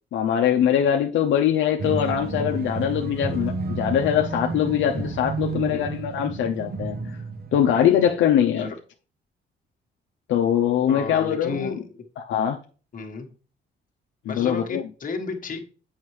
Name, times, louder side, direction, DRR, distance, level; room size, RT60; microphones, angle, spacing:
voice 1, 0.1-7.0 7.5-8.7 10.3-11.8 12.2-12.6 14.3-14.8, left 9 dB, 75° left, 0.6 m, -22 dB
sound 1, 1.8-8.2 8.5-8.6, right 4 dB, 50° right, 1.1 m, -31 dB
voice 2, 5.5-5.8 8.6-8.8 10.9-11.9 12.9-13.3 14.3-15.6, left 4 dB, 45° left, 1.3 m, -32 dB
7.2 x 5.5 x 3.2 m
cardioid pair, 90°, 20 cm